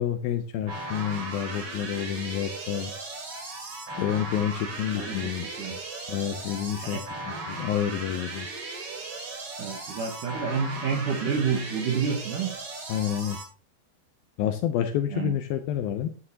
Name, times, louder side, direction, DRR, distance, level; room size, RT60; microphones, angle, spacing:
voice 1, 0.0-2.9 4.0-5.8 6.1-7.0 7.5-8.5 12.9-13.4 14.4-16.1, left 10 dB, 75° left, 7 dB, 2.3 m, -29 dB
sound 1, 0.7-13.5, right 3 dB, 40° right, 2.9 m, -37 dB
voice 2, 4.9-5.9 6.8-7.0 9.6-12.6 15.1-15.3, right 6 dB, 65° right, 2 dB, 2.3 m, -29 dB
11.0 x 9.7 x 2.8 m, 0.38 s
omnidirectional pair, 4.7 m